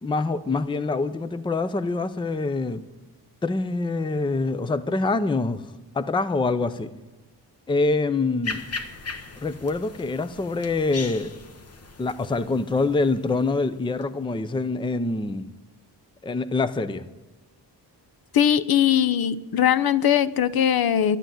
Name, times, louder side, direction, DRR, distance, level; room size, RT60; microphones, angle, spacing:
voice 1, 0.0-2.8 3.4-5.6 5.9-6.9 7.7-8.6 9.4-11.4 12.0-15.5 16.2-17.0, left 3 dB, 10° left, 12 dB, 0.5 m, -25 dB
sound 1, 8.4-14.0, left 4 dB, 35° left, 1.1 m, -38 dB
voice 2, 18.3-21.2, left 9 dB, 55° left, 16 dB, 0.7 m, -20 dB
11.5 x 11.5 x 7.7 m, 1.1 s
wide cardioid pair, 135°, 42 cm